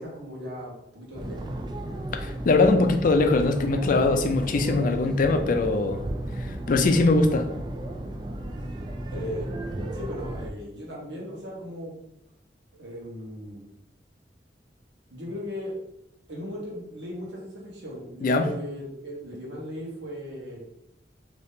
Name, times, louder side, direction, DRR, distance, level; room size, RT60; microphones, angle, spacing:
voice 1, 0.0-1.5 9.0-12.0 12.7-13.6 15.1-15.7 16.3-20.6, equal, 85° right, -4 dB, 1.2 m, -37 dB
sound 1, 1.1-10.5, right 1 dB, 25° right, 0.3 m, -34 dB
voice 2, 2.1-6.0 6.4-7.5 18.2-18.5, left 3 dB, 50° left, 6 dB, 0.4 m, -22 dB
2.8 x 2.7 x 3.5 m, 0.81 s
head